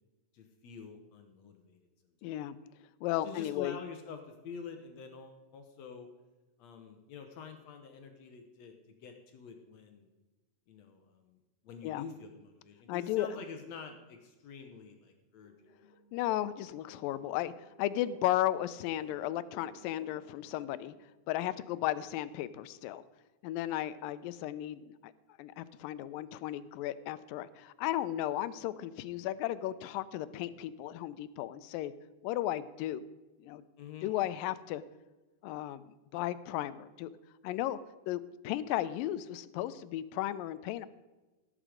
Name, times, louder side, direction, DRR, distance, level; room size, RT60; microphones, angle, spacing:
voice 1, 0.3-2.2 3.2-6.1 6.6-10.1 10.7-11.4 11.6-15.5 33.8-34.1, left 6 dB, 65° left, 5 dB, 1.9 m, -47 dB
voice 2, 2.2-2.6 3.0-3.8 11.8-12.1 12.9-13.3 16.1-17.5 17.8-20.9 21.3-23.0 23.4-25.1 25.4-31.9 32.2-33.1 33.4-33.6 34.0-34.8 35.4-37.1 37.4-37.8 38.1-40.9, left 13 dB, 85° left, 15 dB, 2.3 m, -35 dB
sound 1, 15.4-20.9, left 1 dB, 30° left, 4.7 m, -60 dB
16.5 x 7.6 x 5.0 m, 1.2 s
omnidirectional pair, 4.0 m